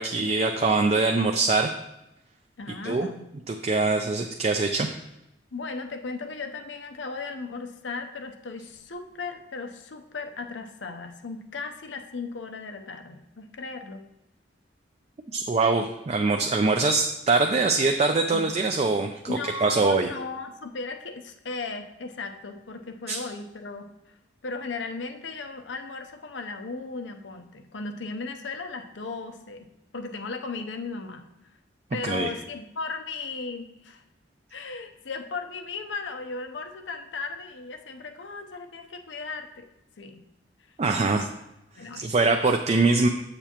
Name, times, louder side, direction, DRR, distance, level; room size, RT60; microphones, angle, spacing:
voice 1, 0.0-1.7 2.8-3.1 3.5-4.9 15.3-20.1 23.1-23.2 32.0-32.3 40.8-41.3 42.0-43.1, right 3 dB, 35° right, 4 dB, 0.4 m, -23 dB
voice 2, 2.6-3.3 5.5-14.0 18.3-18.5 19.2-24.2 24.4-31.2 31.9-34.0 34.5-39.7 40.0-40.2 40.7-40.8 41.0-41.3 41.7-42.1, left 3 dB, 85° left, 6 dB, 0.7 m, -36 dB
8.0 x 6.8 x 2.9 m, 0.89 s
head